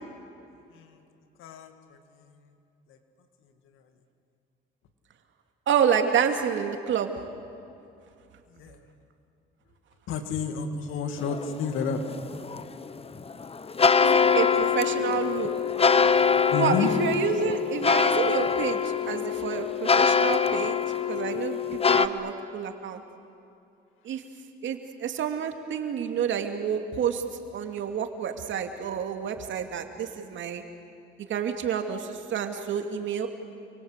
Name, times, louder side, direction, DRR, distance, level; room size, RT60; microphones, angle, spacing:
voice 1, 0.7-1.0 1.4-2.5 2.9-3.0 3.7-3.8 8.5-8.8 10.1-12.0 16.5-16.9, left 6 dB, 90° left, 7 dB, 2.4 m, -31 dB
voice 2, 5.7-7.1 14.0-15.5 16.5-20.8 21.1-23.0 24.0-24.2 24.6-27.2 27.5-30.6 31.3-33.3, right 8 dB, 70° right, 5 dB, 2.6 m, -29 dB
sound 1, 11.2-22.1, left 6 dB, 30° left, 1.1 m, -24 dB
29.5 x 23.5 x 8.2 m, 2.7 s
cardioid pair, 90°, 20 cm